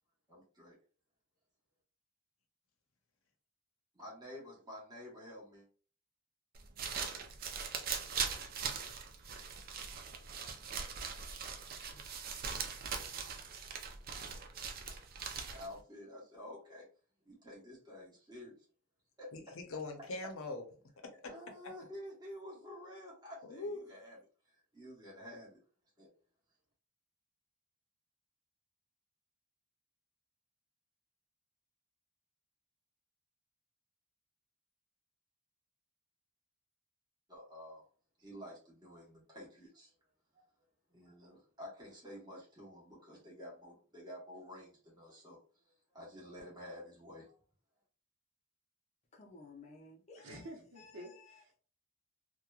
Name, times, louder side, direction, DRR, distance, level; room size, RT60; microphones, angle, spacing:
voice 1, 0.3-0.8 3.9-5.7 15.5-16.9 17.2-18.6 19.2-19.3 21.2-24.2 24.7-25.6 26.0-26.1 37.3-37.8 38.2-39.9 40.3-40.4 40.9-45.4 45.9-47.4, left 1 dB, 20° right, -5 dB, 1.0 m, -50 dB
sound 1, 6.5-15.8, right 6 dB, 45° right, 0.4 m, -41 dB
voice 2, 19.3-20.6 21.0-21.3 23.4-23.9, left 2 dB, 75° left, 4 dB, 0.6 m, -42 dB
voice 3, 49.1-50.5 50.8-51.4, left 3 dB, 30° left, 0 dB, 0.5 m, -56 dB
voice 4, 50.2-51.6, right 1 dB, 65° right, 2 dB, 0.7 m, -50 dB
2.9 x 2.1 x 2.3 m, 0.41 s
head